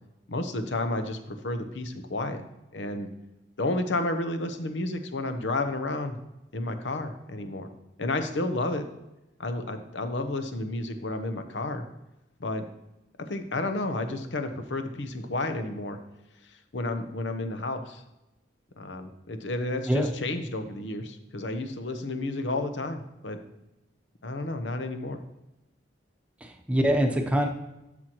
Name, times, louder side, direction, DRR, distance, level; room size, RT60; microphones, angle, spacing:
voice 1, 0.3-2.4 2.7-3.1 3.6-6.2 6.5-7.7 8.0-8.8 9.4-11.8 12.4-12.6 13.3-16.0 16.7-18.0 18.8-23.4 24.2-25.2, left 2 dB, 85° left, 8 dB, 0.9 m, -31 dB
voice 2, 26.4-27.5, equal, 5° right, 2 dB, 0.8 m, -24 dB
12.0 x 6.2 x 3.0 m, 0.95 s
head